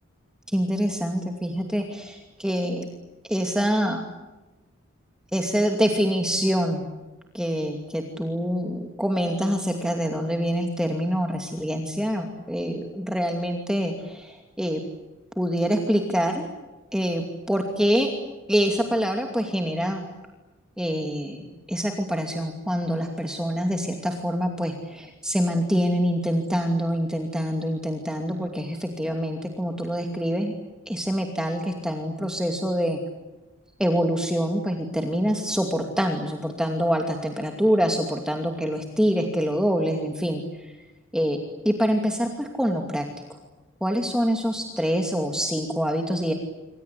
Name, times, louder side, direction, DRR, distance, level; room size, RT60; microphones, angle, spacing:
voice 1, 0.5-2.9 3.3-4.0 5.3-6.9 7.3-14.8 15.4-16.4 16.9-18.1 18.5-20.0 20.8-30.5 30.9-33.0 33.8-40.8 41.1-41.4 41.7-43.0 43.8-46.3, equal, 5° right, 3 dB, 2.6 m, -25 dB
27.0 x 26.0 x 8.4 m, 1.1 s
head